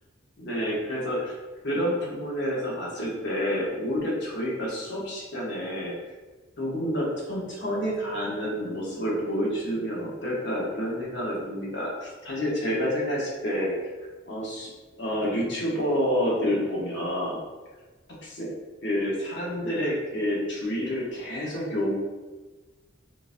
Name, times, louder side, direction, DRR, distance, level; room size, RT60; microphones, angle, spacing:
voice 1, 0.4-1.4 1.6-6.0 6.6-13.9 14.3-14.7 15.0-17.4 18.3-18.5 18.8-21.9, equal, 60° left, -4 dB, 0.9 m, -28 dB
3.7 x 2.5 x 2.5 m, 1.2 s
head